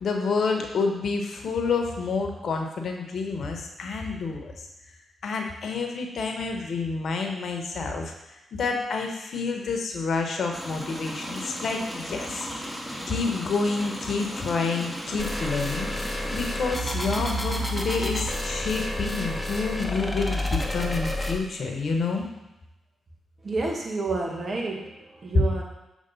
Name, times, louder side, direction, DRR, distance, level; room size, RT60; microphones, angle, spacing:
voice 1, 0.0-4.5 5.2-8.1 8.5-12.8 13.1-22.3 25.3-25.4, left 4 dB, 65° left, 3 dB, 1.0 m, -28 dB
sound 1, 10.5-22.3, equal, 5° right, 2.0 m, -39 dB
sound 2, 15.2-21.4, left 1 dB, 10° left, 1.0 m, -30 dB
voice 2, 23.4-25.6, right 3 dB, 50° right, 0 dB, 1.5 m, -30 dB
6.6 x 3.3 x 5.4 m, 0.97 s
hypercardioid pair, 40°, 0 cm